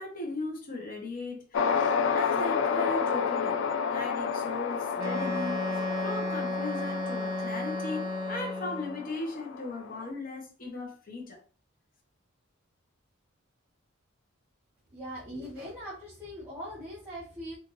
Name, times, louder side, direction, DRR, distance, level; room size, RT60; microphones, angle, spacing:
voice 1, 0.0-11.4, left 3 dB, 45° left, 1 dB, 0.8 m, -38 dB
sound 1, 1.5-10.1, left 6 dB, 60° left, 0.4 m, -31 dB
Wind instrument woodwind instrument, 5.0-9.1, left 1 dB, 85° right, 1.0 m, -33 dB
voice 2, 14.9-17.6, equal, 10° right, -9 dB, 1.0 m, -41 dB
3.8 x 2.5 x 3.0 m, 0.39 s
head